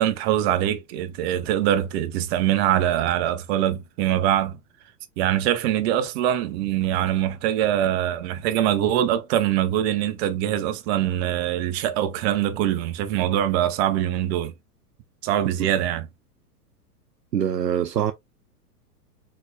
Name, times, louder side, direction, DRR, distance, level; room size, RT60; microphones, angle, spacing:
voice 1, 0.0-4.6 5.2-14.5 15.2-16.1, right 11 dB, 40° right, 1.1 m, -23 dB
voice 2, 17.3-18.1, right 9 dB, 85° right, 0.6 m, -24 dB
4.8 x 4.1 x 2.3 m
figure-of-eight pair, 95°, 48 cm